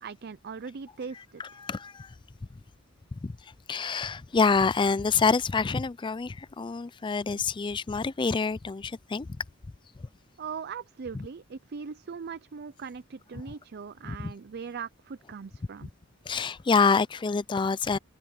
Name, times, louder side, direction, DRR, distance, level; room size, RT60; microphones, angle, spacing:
voice 1, 0.0-1.6 10.4-15.9, right 6 dB, 50° right, 0.5 m, -40 dB
voice 2, 1.4-2.1 3.1-9.3 11.1-11.2 14.0-14.3 16.3-18.0, left 5 dB, 25° left, 0.4 m, -27 dB
open air
head